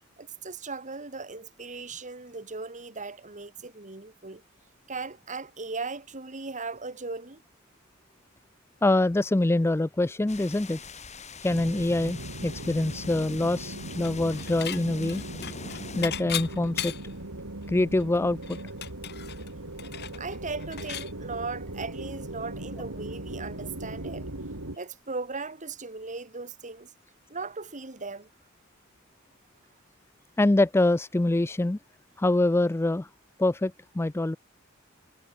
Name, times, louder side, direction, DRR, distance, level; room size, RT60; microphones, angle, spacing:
voice 1, 0.2-4.4 4.9-7.4 20.2-24.3 24.8-26.9 27.3-28.3, right 4 dB, 35° right, 2.5 m, -38 dB
voice 2, 8.8-10.8 11.4-15.2 16.0-16.9 17.7-18.6 30.4-31.8 32.2-33.1 33.4-34.4, left 2 dB, 10° left, 0.4 m, -25 dB
sound 1, 10.3-16.1, left 5 dB, 35° left, 4.3 m, -44 dB
sound 2, 11.5-24.8, right 1 dB, 80° right, 3.1 m, -39 dB
Dishes pots and pans / Chink clink, 14.0-14.8 15.1-17.2 17.6-17.7 18.0-21.1, left 10 dB, 50° left, 1.6 m, -36 dB
head